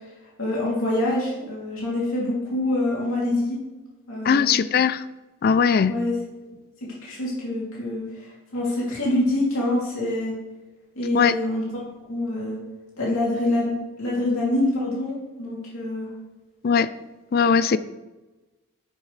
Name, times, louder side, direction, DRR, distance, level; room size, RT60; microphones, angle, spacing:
voice 1, 0.4-3.6 4.1-4.5 5.9-6.1 6.9-10.3 11.0-11.6 12.1-12.6 13.0-13.7 14.0-16.1, left 1 dB, 75° left, -6 dB, 2.9 m, -25 dB
voice 2, 4.2-5.0 5.4-5.9 11.1-11.3 16.6-16.9 17.3-17.8, left 6 dB, 45° left, 15 dB, 0.3 m, -19 dB
10.0 x 7.5 x 3.3 m, 1.1 s
head